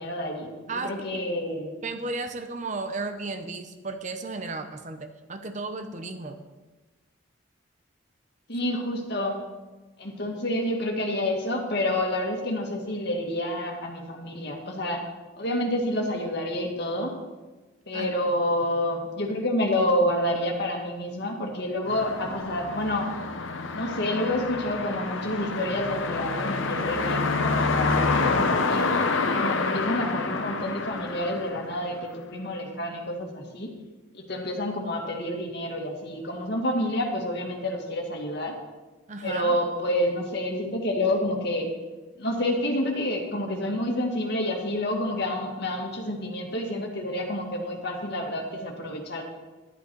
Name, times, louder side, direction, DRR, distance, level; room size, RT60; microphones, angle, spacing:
voice 1, 0.0-1.7 8.5-9.4 10.0-15.0 15.4-17.2 17.9-23.1 23.7-28.9 29.4-33.8 34.1-38.6 39.2-41.7 42.2-49.2, left 1 dB, 55° left, 1 dB, 2.0 m, -28 dB
voice 2, 1.8-6.4 17.9-18.1 39.1-39.6, right 3 dB, 35° right, 7 dB, 0.8 m, -34 dB
sound 1, 21.9-32.1, left 3 dB, 75° left, 0.9 m, -27 dB
11.0 x 11.0 x 4.6 m, 1.2 s
head